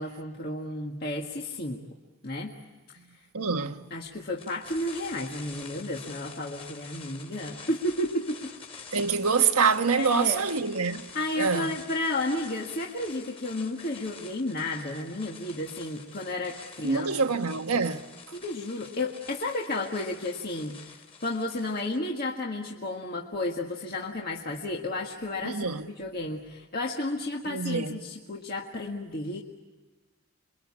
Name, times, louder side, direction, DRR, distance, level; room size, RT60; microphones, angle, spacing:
voice 1, 0.0-1.8 2.2-2.5 3.9-8.5 10.0-10.4 11.1-17.3 18.3-29.4, left 2 dB, 45° left, 1.8 m, -32 dB
voice 2, 3.3-3.8 8.9-11.1 11.4-11.7 16.8-18.1 25.4-25.9 27.5-28.0, right 5 dB, 85° right, 1.4 m, -26 dB
sound 1, 4.4-22.1, left 5 dB, 25° left, 3.3 m, -47 dB
29.0 x 23.5 x 8.6 m
head